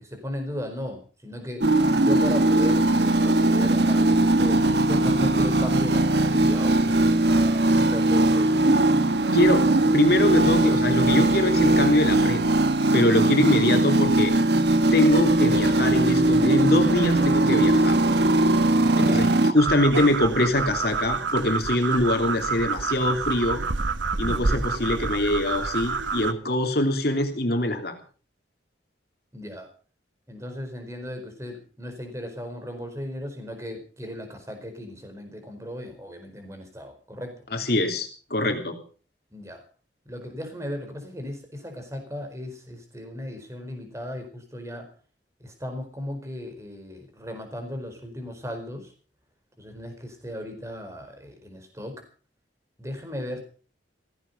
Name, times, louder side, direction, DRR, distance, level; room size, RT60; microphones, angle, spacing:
voice 1, 0.0-1.7 2.0-8.8 18.8-19.2 24.3-24.8 29.3-29.7 30.3-37.4 39.3-39.6 40.1-44.9 45.4-48.9 49.6-52.0 52.8-53.4, left 1 dB, 15° right, 6 dB, 4.5 m, -36 dB
sound 1, 1.6-19.5, right 2 dB, 65° right, 1.3 m, -20 dB
voice 2, 9.3-12.5 12.9-14.3 14.9-18.0 19.0-23.6 24.2-27.9 37.5-38.8, left 1 dB, 55° left, 4 dB, 3.1 m, -23 dB
sound 2, 19.6-26.3, right 4 dB, 85° right, 1.1 m, -28 dB
17.0 x 16.0 x 5.4 m, 0.40 s
head